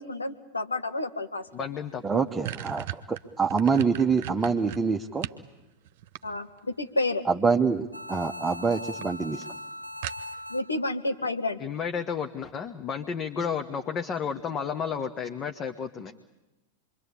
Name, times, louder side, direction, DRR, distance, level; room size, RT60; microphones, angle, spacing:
voice 1, 0.0-1.5 2.1-2.2 6.2-7.2 10.5-11.6, left 2 dB, 80° left, 6 dB, 1.8 m, -30 dB
voice 2, 1.5-2.0 11.6-16.1, left 6 dB, 30° left, 6 dB, 1.4 m, -32 dB
sound 1, 1.6-1.7 2.0-5.5 5.9-6.7 7.8-8.2 8.6-8.7 9.0-9.1 9.4-9.5 10.0-10.6, right 12 dB, 50° right, 1.1 m, -37 dB
voice 3, 2.0-5.3 7.2-9.4, right 5 dB, 10° right, 2 dB, 1.1 m, -26 dB
sound 2, 7.9-11.0, left 1 dB, 90° right, 0.8 m, -40 dB
27.0 x 23.0 x 8.6 m, 1.0 s
figure-of-eight pair, 90°, 0 cm